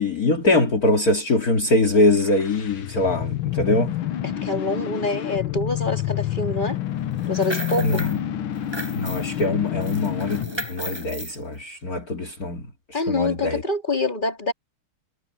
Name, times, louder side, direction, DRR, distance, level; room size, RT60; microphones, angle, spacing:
voice 1, 0.0-3.9 7.8-8.2 8.9-13.6, left 2 dB, 45° left, 2.8 m, -23 dB
sound 1, 2.1-10.7, left 12 dB, 70° left, 1.8 m, -28 dB
voice 2, 4.2-6.8 7.3-8.0 12.9-14.5, left 2 dB, 20° left, 4.1 m, -26 dB
sound 2, 7.2-8.2 8.5-9.4 9.8-11.4, right 1 dB, 10° right, 7.8 m, -34 dB
omnidirectional pair, 2.4 m